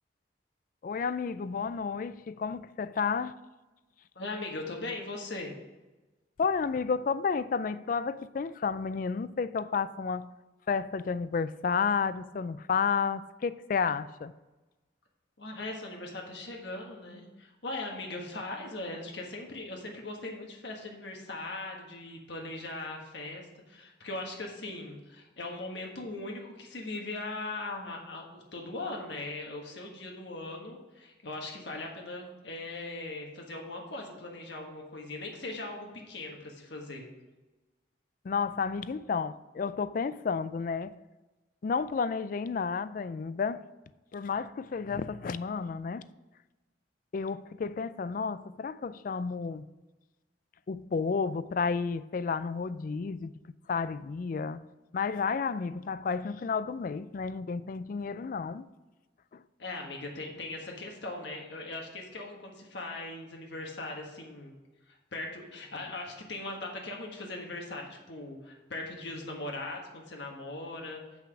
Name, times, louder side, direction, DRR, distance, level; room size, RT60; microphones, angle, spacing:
voice 1, 0.8-3.3 6.4-10.3 10.7-14.3 38.2-40.9 41.6-43.6 44.1-46.1 47.1-49.6 50.7-53.3 53.7-54.6 54.9-58.7 59.3-59.4, left 5 dB, 45° left, 0.3 m, -31 dB
voice 2, 4.1-5.5 15.4-37.1 59.6-64.5 64.9-71.0, left 2 dB, 70° left, 1.4 m, -39 dB
8.0 x 5.8 x 4.8 m
head